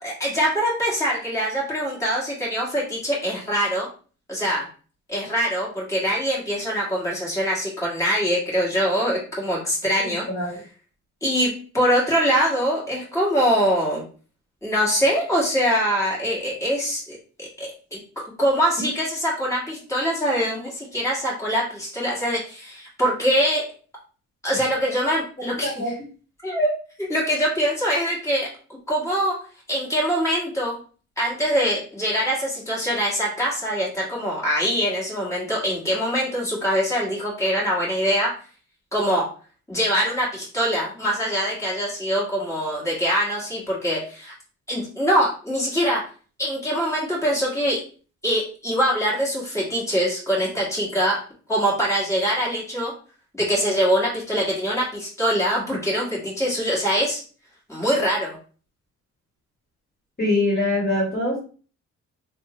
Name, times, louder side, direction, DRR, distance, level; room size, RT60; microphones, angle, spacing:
voice 1, 0.0-3.9 4.3-4.7 5.1-10.2 11.2-14.0 14.6-18.0 18.4-23.6 24.4-25.8 26.4-26.7 27.0-28.5 28.9-29.4 29.7-30.8 31.2-38.3 38.9-39.3 39.7-44.3 44.7-46.0 46.4-47.8 48.2-51.2 51.5-52.9 53.4-57.2 57.7-58.4, equal, 10° left, -5 dB, 2.0 m, -23 dB
voice 2, 10.0-10.6 25.6-25.9 60.2-61.4, left 2 dB, 30° left, -4 dB, 1.8 m, -24 dB
3.7 x 2.7 x 3.1 m, 0.39 s
cardioid pair, 90°, 30 cm